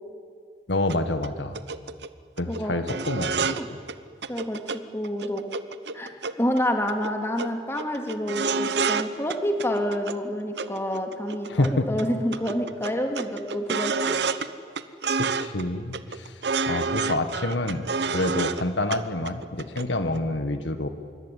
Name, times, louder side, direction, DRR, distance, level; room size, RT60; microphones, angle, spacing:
voice 1, 0.7-1.6 2.4-3.5 11.5-11.9 15.1-16.4 16.7-17.9 18.1-20.9, left 2 dB, 85° left, 8 dB, 1.7 m, -27 dB
sound 1, 0.9-1.0 1.2-1.3 1.5-2.1 2.4-2.6 2.9-3.6 3.9-4.0 4.2-4.8 5.0-6.6 6.9-7.1 7.4-7.5 7.8-9.0 9.3-10.2 10.6-11.7 12.0-12.1 12.3-14.5 14.8-15.6 15.9-18.6 18.9-19.0 19.3-19.8 20.1-20.2, right 5 dB, 70° right, 1.0 m, -28 dB
voice 2, 4.3-5.5 5.9-6.1 6.4-14.2, equal, 15° left, 3 dB, 2.6 m, -28 dB
25.5 x 23.0 x 9.3 m, 2.2 s
head